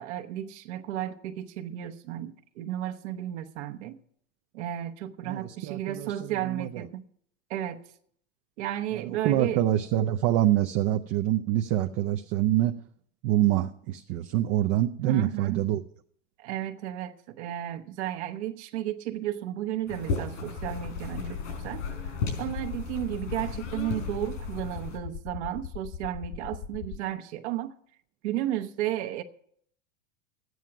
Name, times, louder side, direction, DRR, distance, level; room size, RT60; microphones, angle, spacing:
voice 1, 0.0-4.0 4.5-7.0 7.5-7.8 8.6-9.6 15.0-15.6 16.4-21.8 22.4-27.7 28.2-29.2, right 12 dB, 65° right, 1.1 m, -33 dB
voice 2, 5.2-6.8 8.9-12.7 13.2-15.8, right 13 dB, 40° right, 0.5 m, -26 dB
sound 1, 19.9-25.0, left 4 dB, 85° left, 4.5 m, -36 dB
sound 2, 20.6-27.0, left 8 dB, 35° left, 0.6 m, -38 dB
12.5 x 9.3 x 5.9 m
supercardioid pair, 150°, 37 cm